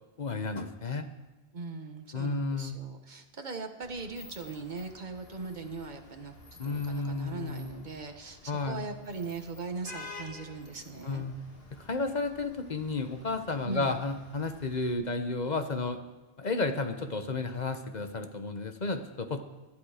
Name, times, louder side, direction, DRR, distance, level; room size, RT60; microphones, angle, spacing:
voice 1, 0.2-1.1 2.1-2.8 6.6-7.7 8.5-8.8 11.0-11.3 11.7-16.0 16.4-19.4, left 3 dB, 40° left, 7 dB, 1.2 m, -32 dB
voice 2, 1.5-11.2 13.6-14.0, right 3 dB, 40° right, 5 dB, 1.4 m, -40 dB
Vehicle horn car horn honking / Traffic noise roadway noise, 3.8-14.9, left 3 dB, 55° left, 2.2 m, -51 dB
18.0 x 12.0 x 5.0 m, 1.2 s
omnidirectional pair, 1.2 m